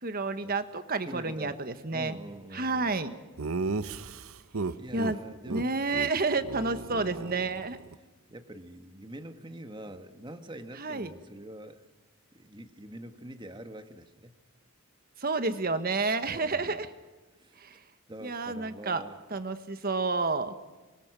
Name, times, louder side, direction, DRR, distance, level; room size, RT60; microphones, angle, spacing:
voice 1, 0.0-2.2 2.5-3.1 4.9-5.2 5.5-7.8 10.8-11.1 15.2-16.9 17.6-17.8 18.2-19.0 19.3-20.6, right 3 dB, 45° right, 10 dB, 1.4 m, -30 dB
voice 2, 1.0-1.6 1.9-3.1 4.8-5.7 8.3-11.8 12.3-14.4 16.2-16.8 17.4-17.6 18.1-19.2, right 1 dB, 20° right, 8 dB, 1.6 m, -45 dB
Laughter, 3.4-5.1 5.5-5.6 5.9-6.1 6.4-7.9, right 3 dB, 75° right, 0.9 m, -34 dB
27.0 x 23.0 x 6.1 m, 1.2 s
head